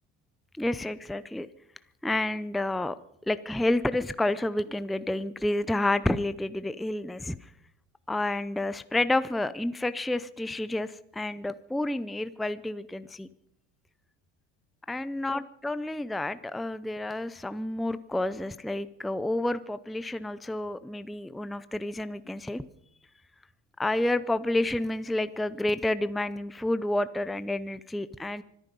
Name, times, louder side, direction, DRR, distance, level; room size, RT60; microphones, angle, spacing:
voice 1, 0.6-1.5 2.0-3.0 3.3-7.5 8.1-13.3 14.9-22.6 23.8-28.4, left 1 dB, ahead, 14 dB, 0.5 m, -29 dB
25.0 x 10.0 x 5.4 m, 0.77 s
hypercardioid pair, 80°, 37 cm